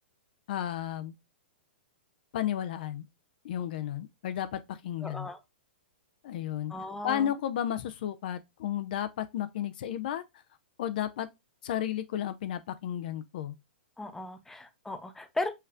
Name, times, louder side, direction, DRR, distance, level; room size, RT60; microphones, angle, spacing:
voice 1, 0.5-1.1 2.3-3.1 3.4-5.3 6.2-6.7 7.0-10.2 10.8-11.3 11.6-13.5, left 10 dB, 55° left, 0.5 m, -33 dB
voice 2, 5.0-5.4 6.7-7.3 14.0-15.5, left 2 dB, 5° left, 0.7 m, -36 dB
5.6 x 3.2 x 2.3 m
figure-of-eight pair, 110°, 6 cm